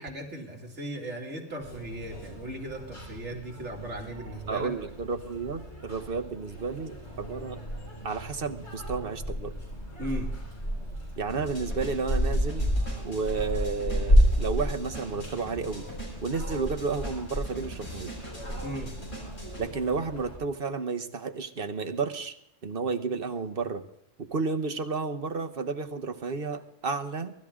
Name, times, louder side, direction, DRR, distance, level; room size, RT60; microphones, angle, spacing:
voice 1, 0.0-4.7 10.0-10.3 18.6-18.9, right 1 dB, 70° right, 1 dB, 2.9 m, -37 dB
sound 1, 1.6-20.4, equal, 65° left, 5.1 m, -31 dB
voice 2, 4.5-7.6 8.0-9.5 11.2-12.7 13.0-15.9 16.2-18.2 19.6-22.3 22.6-23.8 24.2-27.3, right 4 dB, 50° right, 6 dB, 1.3 m, -32 dB
sound 2, 11.3-19.6, right 1 dB, 40° left, 5.9 m, -43 dB
23.0 x 12.5 x 3.7 m, 0.76 s
omnidirectional pair, 1.2 m